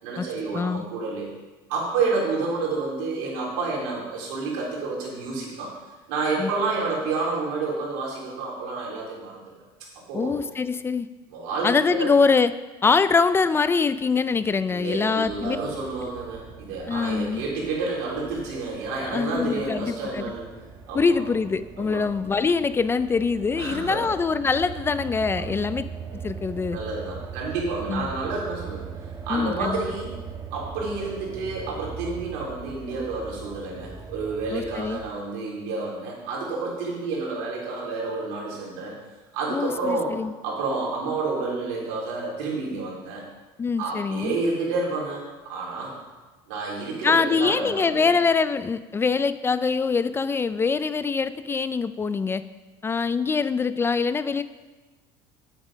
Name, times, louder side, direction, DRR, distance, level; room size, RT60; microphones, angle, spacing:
voice 1, 0.0-1.3 1.7-5.7 6.1-9.6 10.1-10.3 11.3-12.1 14.7-20.5 20.9-21.2 21.8-22.0 23.6-24.0 25.4-25.5 26.7-30.1 30.5-39.0 39.3-40.2 40.4-43.2 43.8-45.9 46.5-48.1, right 3 dB, 85° right, -4 dB, 4.0 m, -29 dB
voice 2, 0.5-0.8 6.4-6.5 10.1-11.1 11.6-12.5 12.8-15.6 16.9-17.4 19.0-20.3 20.9-25.8 26.1-26.8 27.9-28.2 29.3-29.8 34.5-35.0 39.5-40.3 43.6-44.4 47.0-52.4 52.8-54.4, left 5 dB, 20° left, 14 dB, 0.4 m, -24 dB
sound 1, 15.2-35.1, right 6 dB, 30° right, 1.2 m, -40 dB
9.5 x 8.9 x 5.2 m, 1.2 s
supercardioid pair, 110°, 11 cm